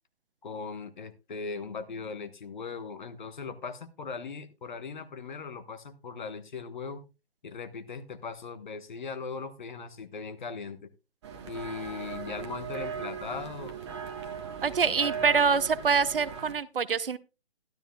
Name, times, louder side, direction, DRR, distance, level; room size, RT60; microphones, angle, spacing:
voice 1, 0.4-7.0 7.4-10.9 11.5-13.7 14.8-15.3, left 5 dB, 45° left, 9 dB, 1.3 m, -39 dB
sound 1, 11.2-16.5, right 7 dB, 25° right, 1.3 m, -38 dB
voice 2, 14.6-17.2, right 5 dB, 55° right, 16 dB, 0.8 m, -25 dB
12.5 x 12.5 x 2.3 m, 0.28 s
figure-of-eight pair, 145°, 32 cm